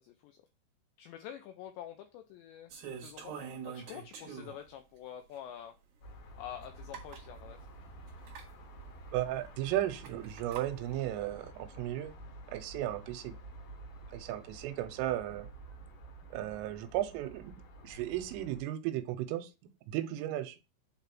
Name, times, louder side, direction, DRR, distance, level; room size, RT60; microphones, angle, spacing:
voice 1, 0.0-0.4 1.0-2.7 3.0-3.4 3.7-5.7 6.4-7.6, left 10 dB, 90° left, 6 dB, 2.5 m, -46 dB
sound 1, 2.7-4.7 5.3-5.4 6.6-6.7 6.9-7.3 8.2-8.5 10.0-10.7, right 7 dB, 60° right, 2.7 m, -44 dB
sound 2, 6.0-18.6, right 2 dB, 70° left, 2.4 m, -50 dB
voice 2, 9.1-12.1 12.5-13.4 14.1-15.5 16.3-17.5 17.8-19.5 19.9-20.6, right 13 dB, 90° right, 9 dB, 3.3 m, -35 dB
8.1 x 3.4 x 4.5 m, 0.28 s
omnidirectional pair, 5.8 m